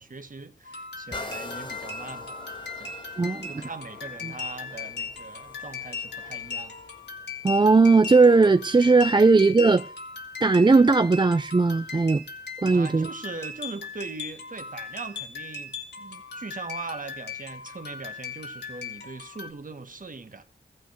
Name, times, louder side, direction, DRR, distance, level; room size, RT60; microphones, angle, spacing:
voice 1, 0.0-2.4 2.8-3.0 3.5-6.8 12.7-20.4, right 3 dB, 50° right, 1.7 m, -40 dB
sound 1, 0.6-19.5, left 4 dB, 70° left, 2.5 m, -38 dB
sound 2, 1.1-8.7 9.3-9.4, left 3 dB, 25° left, 2.1 m, -44 dB
voice 2, 3.2-3.5 4.2-4.3 7.4-9.9 10.4-12.2 12.6-13.1, right 3 dB, 25° right, 0.5 m, -18 dB
14.5 x 6.4 x 6.4 m
cardioid pair, 50°, 18 cm